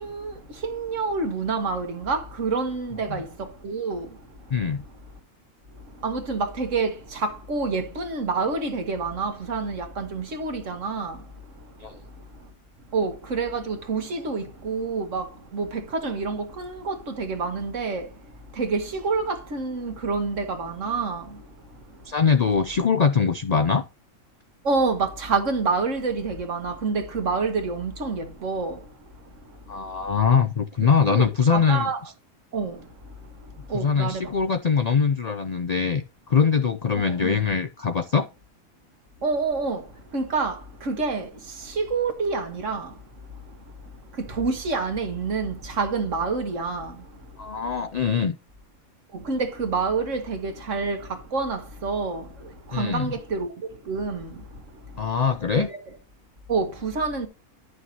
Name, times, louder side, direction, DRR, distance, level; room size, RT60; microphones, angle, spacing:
voice 1, 0.0-0.3 0.6-3.3 3.6-4.1 6.0-6.9 7.2-11.2 12.9-15.3 15.5-15.7 15.9-18.0 18.6-21.2 24.7-28.8 31.1-31.3 31.5-32.0 32.5-32.7 33.7-34.2 37.2-37.4 39.2-39.8 40.1-40.6 40.9-41.3 41.8-42.9 44.4-46.9 49.3-51.0 51.3-52.2 52.8-53.5 53.9-54.3 55.6-55.7 56.5-57.3, right 4 dB, 65° right, 1.7 m, -27 dB
voice 2, 4.5-4.8 11.8-12.0 22.1-23.9 29.7-31.9 33.7-38.3 47.4-48.4 52.7-53.1 55.0-55.7, left 6 dB, 75° left, 0.3 m, -22 dB
11.0 x 6.4 x 2.8 m
omnidirectional pair, 1.5 m